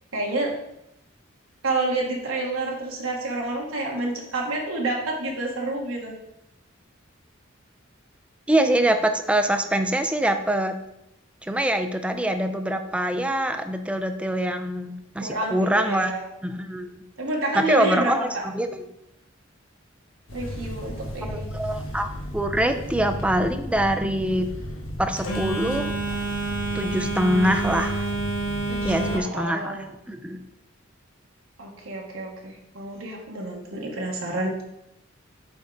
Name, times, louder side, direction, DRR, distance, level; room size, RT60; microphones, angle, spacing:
voice 1, 0.1-0.5 1.6-6.1 15.2-16.2 17.2-18.4 20.3-21.5 28.7-29.9 31.6-34.5, right 2 dB, 80° right, -1 dB, 1.2 m, -29 dB
voice 2, 8.5-10.8 11.4-16.1 16.4-17.0 17.5-18.8 21.3-24.5 25.0-25.9 26.7-28.0 28.8-30.4, right 1 dB, 5° right, 7 dB, 0.4 m, -24 dB
Telephone, 20.3-29.2, right 2 dB, 85° left, 1.3 m, -30 dB
8.1 x 3.6 x 3.9 m, 0.82 s
head